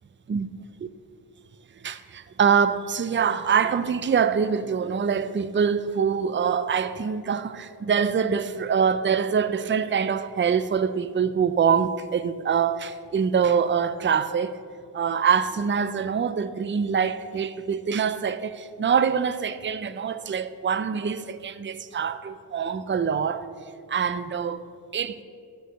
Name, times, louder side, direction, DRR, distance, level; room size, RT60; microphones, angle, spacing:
voice 1, 1.8-14.5 14.9-23.5 23.9-24.6 24.9-25.2, right 7 dB, 30° right, 0.4 m, -24 dB
13.0 x 4.7 x 6.7 m
cardioid pair, 60°, 41 cm